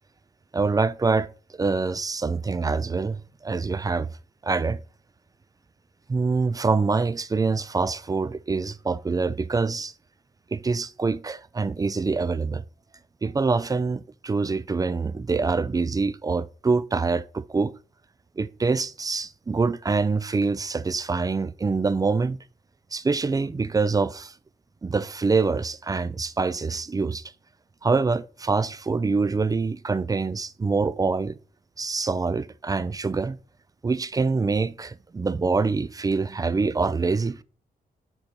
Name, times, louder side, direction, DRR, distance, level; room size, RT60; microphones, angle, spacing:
voice 1, 0.5-1.3 1.6-4.1 4.4-4.8 6.1-9.9 10.5-12.6 13.2-17.7 18.4-22.4 22.9-24.3 24.8-27.2 27.8-31.4 31.8-33.4 33.8-37.4, right 4 dB, 20° right, 0.3 m, -25 dB
7.2 x 3.9 x 5.3 m
wide cardioid pair, 120°, 17 cm